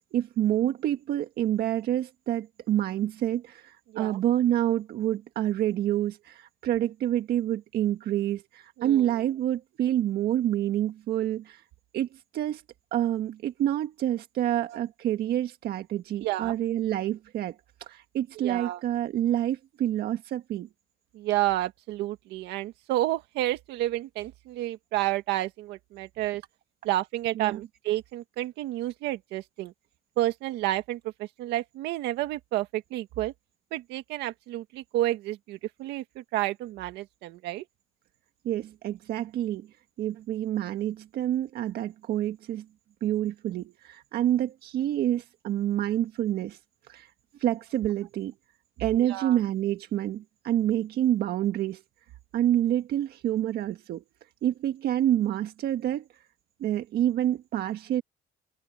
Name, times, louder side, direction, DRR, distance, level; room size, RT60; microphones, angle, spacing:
voice 1, 0.1-11.6 11.9-12.6 12.9-20.7 27.3-27.7 38.4-39.7 40.0-42.6 43.0-46.6 46.9-47.1 47.4-48.3 48.8-51.8 52.3-54.0 54.4-56.1 56.6-58.0, right 12 dB, 70° right, 1.6 m, -28 dB
voice 2, 16.2-16.6 18.4-18.8 21.1-26.4 26.8-29.7 30.2-33.3 33.7-37.6 49.1-49.4, right 15 dB, 85° right, 2.0 m, -30 dB
open air
cardioid pair, 110°, 17 cm